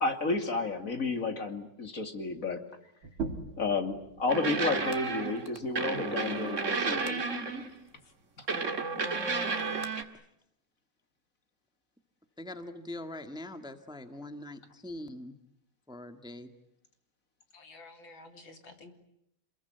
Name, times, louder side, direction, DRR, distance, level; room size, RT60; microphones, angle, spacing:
voice 1, 0.0-2.6 3.6-7.2 8.4-8.5, left 3 dB, 40° left, 7 dB, 3.0 m, -31 dB
sound 1, 3.0-8.2, right 4 dB, 80° right, 3.9 m, -44 dB
sound 2, 4.3-7.8 8.5-10.0, right 4 dB, 40° right, 2.3 m, -32 dB
voice 2, 7.3-7.7 12.4-15.3 15.9-16.5, left 1 dB, ahead, 8 dB, 1.7 m, -42 dB
voice 3, 17.5-18.9, left 3 dB, 70° left, 6 dB, 3.8 m, -51 dB
28.5 x 21.5 x 9.4 m, 0.78 s
omnidirectional pair, 2.2 m